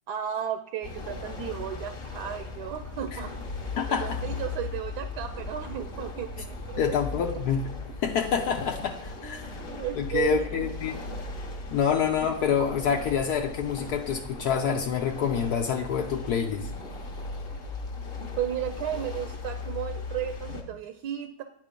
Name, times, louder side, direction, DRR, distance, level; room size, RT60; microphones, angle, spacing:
voice 1, 0.1-3.6 4.0-7.0 9.2-10.6 18.4-21.4, right 10 dB, 80° right, 8 dB, 1.1 m, -34 dB
sound 1, 0.8-20.6, left 3 dB, 40° left, 1.1 m, -37 dB
voice 2, 3.8-4.2 6.8-7.7 8.0-9.5 10.0-10.9 11.7-16.7, left 7 dB, 75° left, 3 dB, 1.1 m, -27 dB
9.0 x 3.7 x 5.1 m, 0.82 s
omnidirectional pair, 1.7 m